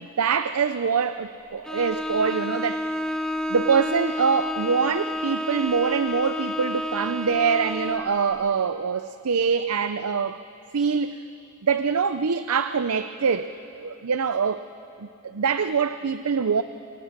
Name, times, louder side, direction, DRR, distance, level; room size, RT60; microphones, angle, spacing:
voice 1, 0.0-2.8 3.5-10.4 10.7-11.2 11.6-14.6 15.0-16.6, right 6 dB, 80° right, 11 dB, 0.6 m, -24 dB
Bowed string instrument, 1.6-8.1, left 1 dB, 5° left, 0.9 m, -30 dB
29.0 x 24.0 x 6.7 m, 2.8 s
head